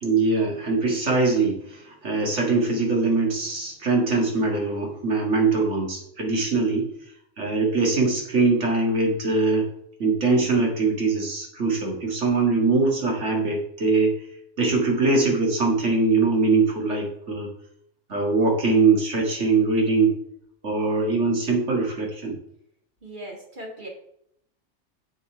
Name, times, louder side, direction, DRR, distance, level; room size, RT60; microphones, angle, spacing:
voice 1, 0.0-6.9 7.4-9.7 10.0-14.2 14.6-17.5 18.1-20.1 20.6-22.4, right 3 dB, 65° right, -1 dB, 2.2 m, -22 dB
voice 2, 23.0-23.9, right 1 dB, 40° right, -1 dB, 2.0 m, -38 dB
8.0 x 5.5 x 4.6 m, 0.73 s
omnidirectional pair, 1.3 m